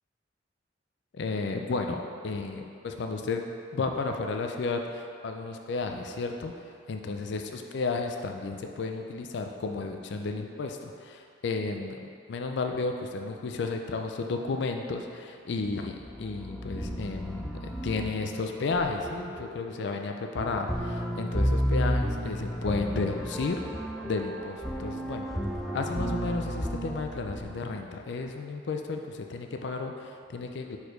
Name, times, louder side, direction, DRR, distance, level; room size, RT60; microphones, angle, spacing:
voice 1, 1.1-3.4 3.7-6.5 6.9-12.0 12.3-23.6 24.0-25.3 25.7-30.8, left 3 dB, 65° left, 4 dB, 0.4 m, -33 dB
sound 1, 16.0-28.0, equal, ahead, 0.3 m, -33 dB
4.7 x 4.3 x 5.1 m, 2.4 s
head